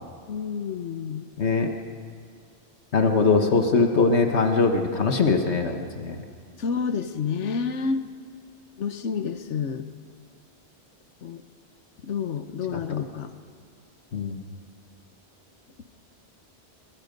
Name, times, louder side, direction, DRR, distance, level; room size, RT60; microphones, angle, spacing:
voice 1, 0.3-1.3 6.6-8.0 8.8-9.9 11.2-11.4 12.0-13.3, left 6 dB, 90° left, 10 dB, 1.3 m, -29 dB
voice 2, 1.4-1.7 2.9-6.2 14.1-14.4, left 4 dB, 70° left, 5 dB, 1.6 m, -21 dB
26.5 x 24.0 x 5.3 m, 2.2 s
omnidirectional pair, 1.2 m